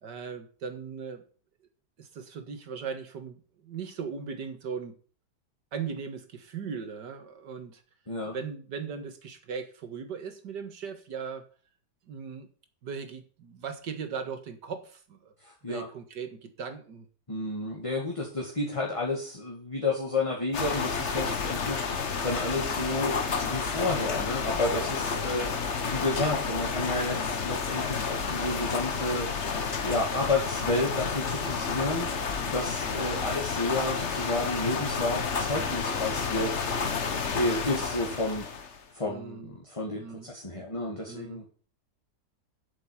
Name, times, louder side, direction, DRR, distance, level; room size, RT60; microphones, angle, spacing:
voice 1, 0.0-1.2 2.0-5.0 5.7-7.8 8.3-11.4 12.1-12.5 12.8-15.3 15.6-17.1 25.1-25.5 33.2-33.3 39.0-39.6 40.0-40.3 40.6-40.7 41.1-41.5, right 6 dB, 80° right, 7 dB, 2.2 m, -38 dB
voice 2, 15.4-15.9 17.3-23.2 23.4-25.5 25.8-29.3 29.8-32.1 32.4-36.5 37.3-38.5 38.9-41.4, left 2 dB, 20° left, -1 dB, 2.2 m, -31 dB
sound 1, 20.5-38.8, left 5 dB, 45° left, 1.4 m, -30 dB
8.0 x 7.7 x 8.7 m, 0.42 s
omnidirectional pair, 1.8 m